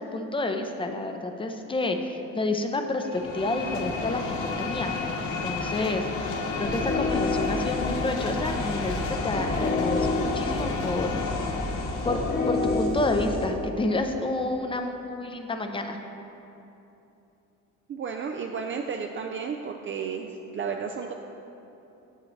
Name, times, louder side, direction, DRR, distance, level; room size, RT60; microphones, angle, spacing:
voice 1, 0.0-5.0 5.4-11.1 12.0-12.2 12.5-16.0, left 2 dB, 15° left, 5 dB, 0.6 m, -29 dB
sound 1, 3.0-12.9, left 4 dB, 75° left, 0.8 m, -32 dB
sound 2, 6.6-14.3, left 2 dB, 30° left, 1.2 m, -29 dB
voice 2, 17.9-21.1, right 6 dB, 40° right, 3 dB, 0.5 m, -33 dB
8.7 x 7.5 x 3.2 m, 2.9 s
cardioid pair, 90°, 30 cm